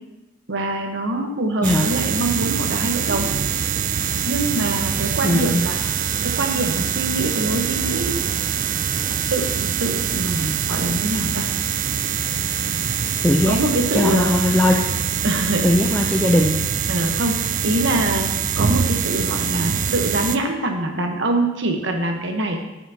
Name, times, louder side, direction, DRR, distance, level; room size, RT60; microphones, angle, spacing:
voice 1, 0.5-3.3 4.2-5.8 6.2-8.2 9.3-9.5 9.8-11.5 13.5-14.3 15.2-15.7 16.9-18.3 18.6-22.6, right 1 dB, 70° right, 3 dB, 1.1 m, -24 dB
sound 1, 1.6-20.4, right 7 dB, 45° right, 0.4 m, -24 dB
voice 2, 5.2-5.6 13.2-13.6 13.9-14.8 15.6-16.7, left 1 dB, 10° left, 0 dB, 0.5 m, -18 dB
11.5 x 5.8 x 2.8 m, 1.0 s
head